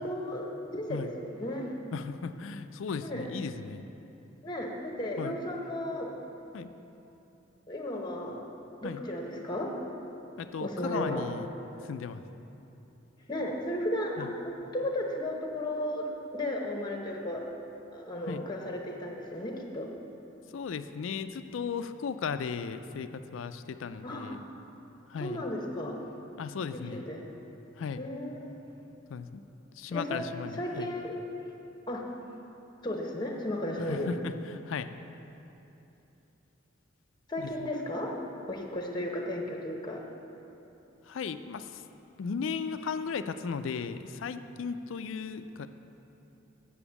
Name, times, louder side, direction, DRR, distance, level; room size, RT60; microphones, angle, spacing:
voice 1, 0.0-1.7 3.0-3.3 4.4-6.2 7.7-8.4 8.8-9.7 10.6-11.3 13.3-17.5 17.9-19.9 24.0-24.4 25.2-26.0 26.7-27.2 28.0-28.5 29.9-30.2 30.5-31.1 31.9-32.0 32.8-34.1 37.3-38.1 38.5-40.0, left 1 dB, 25° left, 1 dB, 0.9 m, -34 dB
voice 2, 1.9-3.8 5.2-5.4 6.5-6.7 8.8-9.0 10.4-11.5 11.8-12.2 14.2-14.3 18.3-18.4 20.5-24.4 25.1-25.4 26.4-27.0 27.8-28.0 29.1-29.4 29.7-30.9 33.9-34.9 37.4-37.7 41.0-41.8 42.2-45.7, left 5 dB, 80° left, 11 dB, 0.4 m, -36 dB
7.0 x 7.0 x 7.1 m, 2.9 s
head